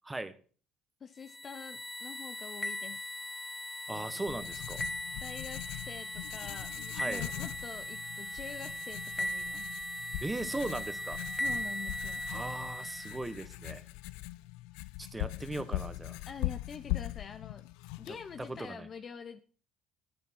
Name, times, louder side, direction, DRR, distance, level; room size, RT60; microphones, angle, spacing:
voice 1, 1.0-3.0 5.2-9.7 11.4-12.3 16.3-17.7 18.0-19.4, left 6 dB, 40° left, 10 dB, 0.7 m, -46 dB
sound 1, 1.2-13.3, equal, 10° left, 1.0 m, -39 dB
Writing, 3.9-18.7, left 19 dB, 85° left, 0.4 m, -41 dB
voice 2, 3.9-4.8 6.9-7.3 10.2-11.2 12.3-13.8 15.0-16.2 18.4-18.9, right 2 dB, 15° right, 12 dB, 1.0 m, -38 dB
9.5 x 8.4 x 4.4 m, 0.40 s
supercardioid pair, 90°, 0 cm